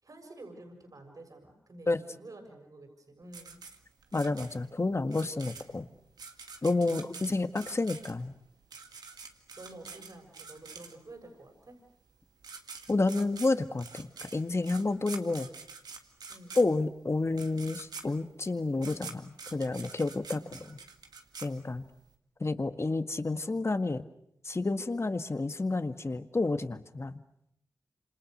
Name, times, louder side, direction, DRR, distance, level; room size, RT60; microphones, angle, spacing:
voice 1, 0.0-3.6 6.9-7.2 9.6-11.8 16.3-16.6 20.4-20.8, right 2 dB, 60° right, 4 dB, 7.0 m, -50 dB
sound 1, 3.3-11.3 12.1-12.2 12.4-22.1, right 5 dB, 90° right, 2.1 m, -46 dB
voice 2, 4.1-5.9 6.6-8.3 12.9-15.5 16.6-20.8 21.4-21.9 22.4-24.1 24.4-27.2, left 3 dB, 45° left, 9 dB, 1.9 m, -30 dB
27.5 x 27.0 x 6.7 m, 0.74 s
cardioid pair, 40°, 7 cm